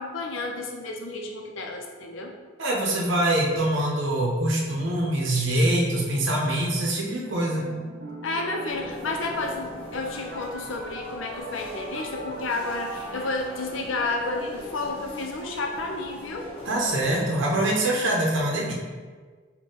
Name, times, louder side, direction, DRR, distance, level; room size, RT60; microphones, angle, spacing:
voice 1, 0.0-2.3 8.2-16.5, left 3 dB, 85° left, 2 dB, 0.5 m, -31 dB
voice 2, 2.6-7.6 16.6-18.7, right 1 dB, 75° right, -2 dB, 0.7 m, -24 dB
sound 1, 7.3-14.3, right 1 dB, 40° right, 0.7 m, -39 dB
sound 2, 8.7-17.3, left 1 dB, 30° left, 1.1 m, -42 dB
4.0 x 2.2 x 3.8 m, 1.5 s
head